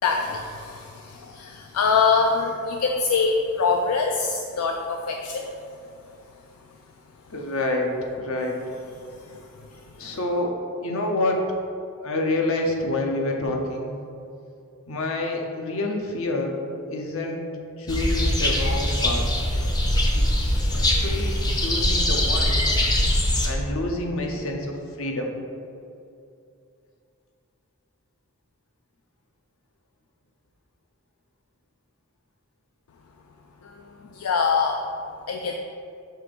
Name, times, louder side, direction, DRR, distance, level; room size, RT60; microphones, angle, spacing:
voice 1, 0.0-5.5 9.0-10.1 33.6-34.8 35.3-35.6, left 5 dB, 80° left, 2 dB, 0.4 m, -25 dB
voice 2, 7.3-8.6 10.0-10.5 10.8-11.5 12.0-13.9 14.9-16.6 16.9-17.5 17.8-19.3 20.1-22.6 23.4-25.3, left 2 dB, 65° left, 2 dB, 0.7 m, -28 dB
sound 1, 17.9-23.5, left 1 dB, 20° left, 0.5 m, -22 dB
5.7 x 3.3 x 5.1 m, 2.6 s
head